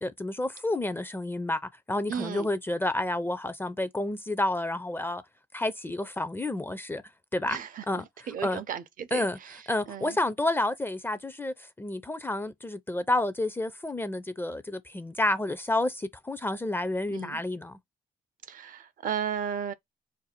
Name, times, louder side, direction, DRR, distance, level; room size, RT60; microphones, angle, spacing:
voice 1, 0.0-1.6 1.9-5.2 5.5-7.0 7.3-7.6 7.9-8.1 8.4-8.6 9.1-9.4 9.7-17.8, left 1 dB, 15° left, 0.4 m, -30 dB
voice 2, 2.1-2.5 7.4-7.8 8.3-9.6 9.9-10.2 17.1-17.4 18.5-19.7, right 8 dB, 60° right, 0.5 m, -34 dB
2.6 x 2.3 x 4.0 m
cardioid pair, 90°, 16 cm